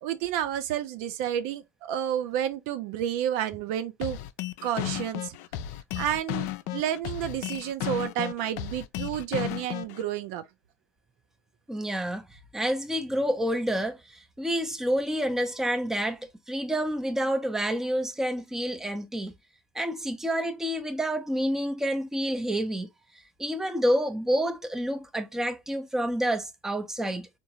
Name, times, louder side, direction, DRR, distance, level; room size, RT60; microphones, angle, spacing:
voice 1, 0.0-4.2 4.6-5.3 6.0-10.4, right 10 dB, 60° right, 0.4 m, -30 dB
sound 1, 4.0-10.0, left 13 dB, 60° left, 0.4 m, -34 dB
voice 2, 11.7-19.3 19.7-22.9 23.4-27.3, equal, 5° right, 0.6 m, -28 dB
3.6 x 2.5 x 2.7 m
hypercardioid pair, 80°, 8 cm